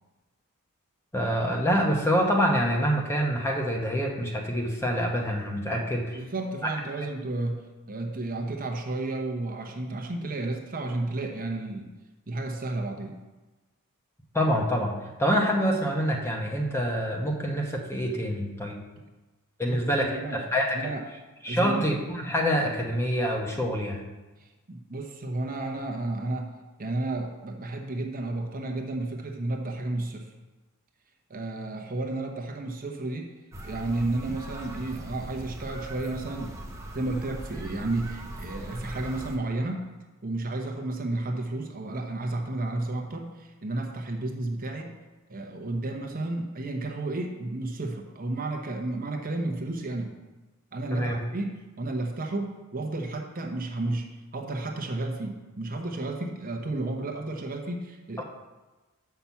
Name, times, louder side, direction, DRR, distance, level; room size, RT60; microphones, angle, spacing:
voice 1, 1.1-6.2 6.6-6.7 14.3-14.9 15.2-18.8 19.6-20.9 21.4-24.0 50.9-51.2 58.2-58.3, equal, 10° left, 0 dB, 1.0 m, -26 dB
voice 2, 6.1-11.9 12.3-13.2 19.6-20.4 20.7-21.0 21.4-21.9 24.4-26.5 26.8-30.3 31.3-33.3 33.6-36.5 36.9-39.9 40.2-45.0 45.3-50.1 50.7-58.2, right 2 dB, 40° right, 3 dB, 0.9 m, -32 dB
sound 1, 33.5-39.4, right 1 dB, 15° right, 0.9 m, -40 dB
6.0 x 5.7 x 7.1 m, 1.2 s
head